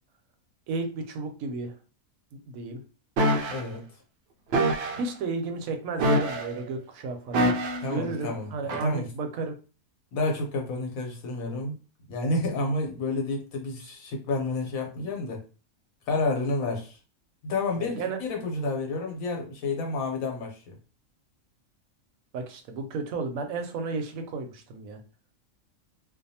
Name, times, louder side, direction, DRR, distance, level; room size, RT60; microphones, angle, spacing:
voice 1, 0.7-1.8 2.3-2.8 5.0-7.5 7.9-9.5 16.6-16.7 17.8-18.2 22.3-25.0, right 3 dB, 80° right, 6 dB, 1.0 m, -33 dB
sound 1, 3.2-3.6 4.5-5.0 6.0-6.6 7.3-7.9 8.7-8.9, right 1 dB, 65° right, 0.6 m, -24 dB
voice 2, 3.5-3.8 7.8-9.1 10.1-11.8 12.1-15.4 16.1-17.0 17.4-20.8, left 2 dB, 80° left, 2 dB, 1.2 m, -30 dB
2.6 x 2.2 x 2.7 m, 0.34 s
omnidirectional pair, 1.4 m